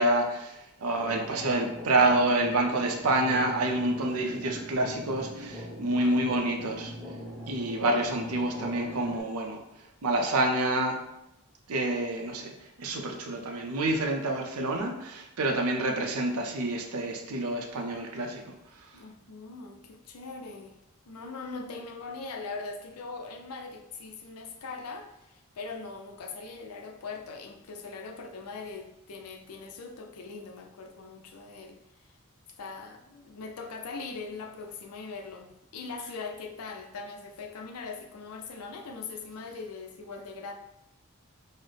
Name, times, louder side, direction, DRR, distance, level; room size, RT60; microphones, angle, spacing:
voice 1, 0.0-6.9 7.5-9.6 10.0-11.0 11.7-12.5 12.8-18.5, right 2 dB, 80° right, 2 dB, 0.5 m, -28 dB
sound 1, 0.9-9.2, equal, 5° left, 0.8 m, -41 dB
voice 2, 5.9-6.4 18.9-20.8 21.1-31.8 32.6-40.5, left 4 dB, 85° left, 4 dB, 0.5 m, -41 dB
4.0 x 2.0 x 3.3 m, 0.86 s
head